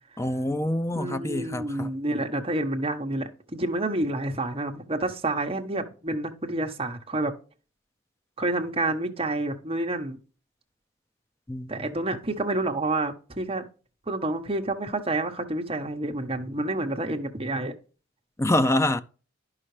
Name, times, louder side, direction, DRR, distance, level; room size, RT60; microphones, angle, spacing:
voice 1, 0.2-1.9 11.5-11.7 18.4-19.0, left 1 dB, 15° left, 0.5 m, -25 dB
voice 2, 0.9-7.3 8.4-10.2 11.7-13.7 14.1-17.7, right 2 dB, 30° right, 1.2 m, -29 dB
11.0 x 5.7 x 3.2 m
head